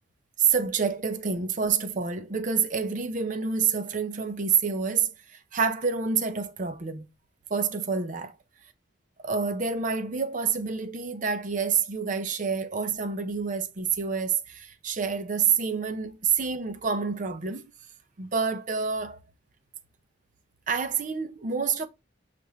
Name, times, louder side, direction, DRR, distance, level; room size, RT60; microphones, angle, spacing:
voice 1, 0.4-5.1 5.5-7.1 7.5-8.3 9.2-17.6 18.2-19.2 20.7-21.9, right 6 dB, 45° right, 0.6 m, -27 dB
6.9 x 2.5 x 3.0 m
head